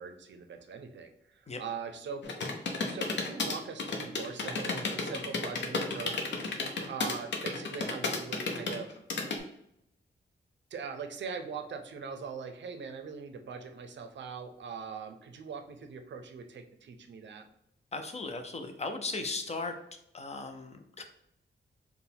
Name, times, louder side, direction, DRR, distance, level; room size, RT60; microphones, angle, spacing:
voice 1, 0.0-2.3 2.8-8.9 10.7-17.5, right 5 dB, 75° right, 6 dB, 0.5 m, -42 dB
sound 1, 2.2-9.4, left 3 dB, 70° left, 0.7 m, -32 dB
voice 2, 17.9-19.8 20.1-21.0, left 3 dB, 35° left, 6 dB, 0.5 m, -37 dB
4.7 x 2.1 x 3.4 m, 0.75 s
wide cardioid pair, 140°, 19 cm